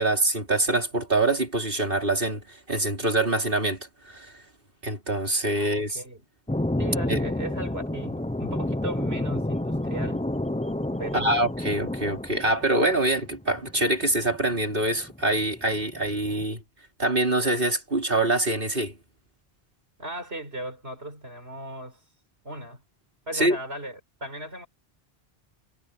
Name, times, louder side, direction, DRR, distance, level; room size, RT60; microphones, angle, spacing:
voice 1, 0.0-3.8 4.1-4.3 4.8-6.0 7.1-7.2 11.1-16.6 17.0-19.0 23.3-23.6, right 2 dB, 60° right, 4.2 m, -25 dB
voice 2, 5.5-6.3 6.8-10.2 11.0-11.4 20.0-22.0 22.4-22.8 23.3-24.7, right 1 dB, 90° right, 5.1 m, -37 dB
sound 1, 6.5-16.4, left 1 dB, 10° left, 0.6 m, -30 dB
omnidirectional pair, 1.0 m